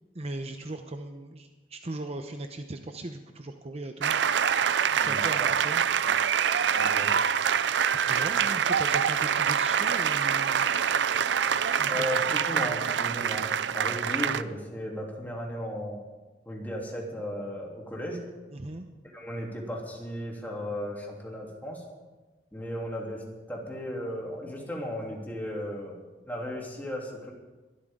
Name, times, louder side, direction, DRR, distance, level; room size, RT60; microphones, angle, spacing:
voice 1, 0.1-4.1 4.9-5.8 7.9-10.7 11.8-12.1 18.5-18.9, right 2 dB, 35° right, 6 dB, 0.8 m, -38 dB
sound 1, 4.0-14.4, right 8 dB, 90° right, 0.5 m, -25 dB
voice 2, 5.0-5.5 6.0-6.2 6.8-7.1 11.9-16.0 16.4-18.2 19.1-21.8 22.5-26.0 26.3-27.3, equal, 10° left, -2 dB, 3.2 m, -35 dB
22.0 x 13.0 x 3.8 m, 1.2 s
head